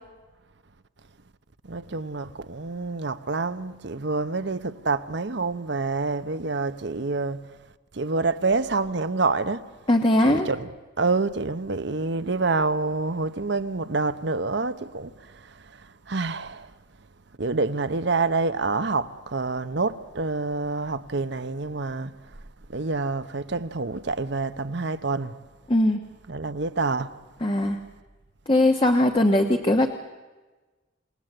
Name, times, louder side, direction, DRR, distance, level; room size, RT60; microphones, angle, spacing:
voice 1, 1.7-7.4 8.0-9.6 10.2-10.7 11.0-15.1 16.1-16.7 17.4-22.1 22.7-25.3 26.3-27.1, right 3 dB, 65° right, 0.9 m, -27 dB
voice 2, 9.9-10.5 25.7-26.0 27.4-27.8 28.5-29.9, left 1 dB, 25° left, 1.2 m, -20 dB
27.5 x 19.0 x 7.9 m
head